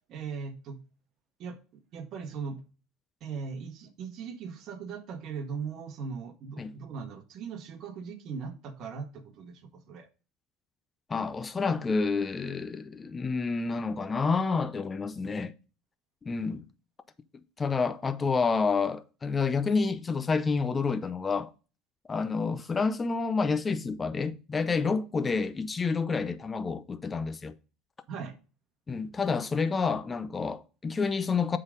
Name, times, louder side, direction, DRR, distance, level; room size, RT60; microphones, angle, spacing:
voice 1, 0.1-0.8 1.4-2.6 3.2-10.1 28.1-28.3, right 5 dB, 50° right, 1.6 m, -39 dB
voice 2, 11.1-15.5 16.2-16.7 17.6-21.5 22.1-27.5 28.9-31.6, left 4 dB, 20° left, 0.6 m, -29 dB
7.9 x 3.9 x 5.1 m
supercardioid pair, 110°, 0 cm